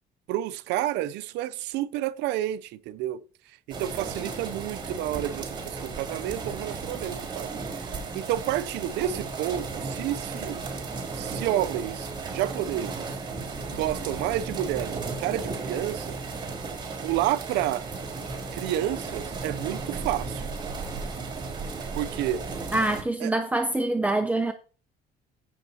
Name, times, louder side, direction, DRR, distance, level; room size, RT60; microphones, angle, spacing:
voice 1, 0.3-3.2 3.7-7.5 8.1-10.6 11.1-13.2 13.7-16.2 17.0-17.9 18.5-20.4 21.9-22.4 23.2-23.3, right 13 dB, 85° right, 0.5 m, -30 dB
sound 1, 3.7-23.0, right 4 dB, 30° right, 4.2 m, -35 dB
voice 2, 22.7-24.5, right 2 dB, 10° right, 0.7 m, -25 dB
16.0 x 6.5 x 2.8 m
cardioid pair, 110°, 17 cm